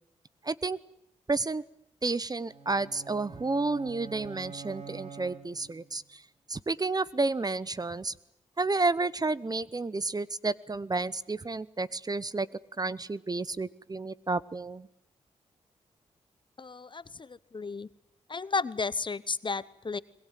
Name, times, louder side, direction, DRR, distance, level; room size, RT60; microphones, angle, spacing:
voice 1, 0.4-0.8 1.3-1.6 2.0-6.2 6.5-8.1 8.6-12.5 12.8-14.9, right 3 dB, 30° right, 19 dB, 0.9 m, -31 dB
sound 1, 2.4-5.9, right 4 dB, 60° right, 5.2 m, -46 dB
voice 2, 16.6-17.9 18.3-20.0, left 4 dB, 40° left, 18 dB, 1.0 m, -33 dB
22.0 x 21.0 x 9.3 m, 0.77 s
cardioid pair, 55°, 13 cm